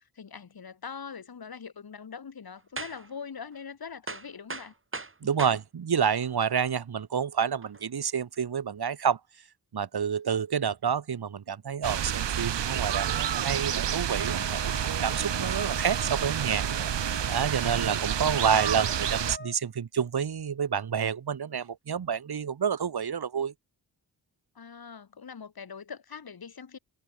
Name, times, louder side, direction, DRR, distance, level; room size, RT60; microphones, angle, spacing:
voice 1, 0.0-4.7 5.2-5.3 18.2-18.8 24.5-26.8, left 6 dB, 60° left, 5.8 m, -43 dB
sound 1, 2.8-3.1 3.5-3.6 4.1-5.6 6.2-6.3 7.6-7.8, right 3 dB, 30° right, 7.4 m, -38 dB
voice 2, 5.2-9.2 9.7-16.8 17.3-23.5, right 7 dB, 65° right, 3.1 m, -29 dB
sound 2, 11.8-19.4, right 10 dB, 85° right, 2.4 m, -29 dB
sound 3, 14.1-19.6, left 3 dB, 25° left, 5.3 m, -42 dB
cardioid pair, 75°, 41 cm